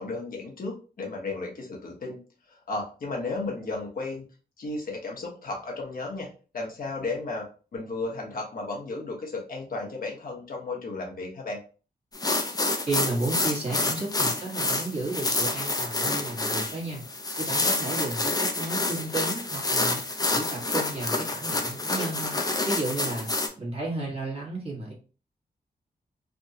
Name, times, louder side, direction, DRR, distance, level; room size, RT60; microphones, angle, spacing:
voice 1, 0.0-2.2 2.5-4.3 4.6-11.6, left 3 dB, 65° left, 0 dB, 1.1 m, -34 dB
sound 1, 12.1-23.5, left 2 dB, 25° left, 0.5 m, -28 dB
voice 2, 12.9-17.0 17.4-20.0 20.3-24.9, right 2 dB, 40° right, -3 dB, 1.4 m, -33 dB
3.5 x 2.3 x 2.7 m, 0.36 s
wide cardioid pair, 110°, 16 cm